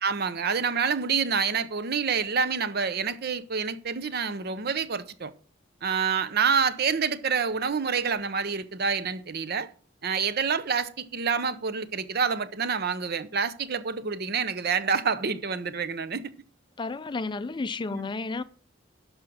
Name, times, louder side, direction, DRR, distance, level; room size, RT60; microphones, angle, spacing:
voice 1, 0.0-5.3 5.8-9.7 10.0-16.3 17.9-18.1, right 6 dB, 55° right, 0.7 m, -27 dB
voice 2, 16.8-18.4, left 3 dB, 25° left, 0.4 m, -32 dB
12.0 x 5.2 x 6.2 m
head